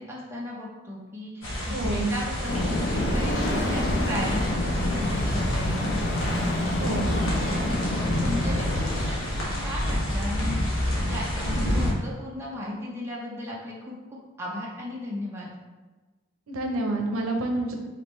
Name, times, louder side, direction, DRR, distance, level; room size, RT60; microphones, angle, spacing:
voice 1, 0.0-6.2 8.0-9.2 9.6-15.5, left 1 dB, 10° right, -5 dB, 0.7 m, -36 dB
sound 1, 1.4-11.9, equal, 80° left, 1.3 m, -28 dB
voice 2, 1.7-2.1 6.8-7.1 16.5-17.8, right 2 dB, 85° right, 2 dB, 0.7 m, -28 dB
sound 2, 2.4-9.1, left 1 dB, 55° left, 0.6 m, -28 dB
5.0 x 3.1 x 3.1 m, 1.2 s
head